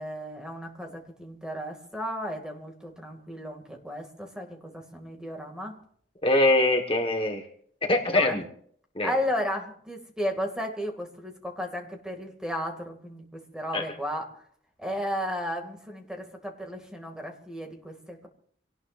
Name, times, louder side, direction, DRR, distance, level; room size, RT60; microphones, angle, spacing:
voice 1, 0.0-5.8 8.1-8.4 9.0-14.2 14.8-18.3, equal, 5° right, 2 dB, 2.4 m, -34 dB
voice 2, 6.2-7.4 7.8-8.4 8.9-9.1 13.7-13.8, left 2 dB, 30° left, 3 dB, 1.5 m, -23 dB
26.0 x 18.5 x 2.6 m, 0.62 s
head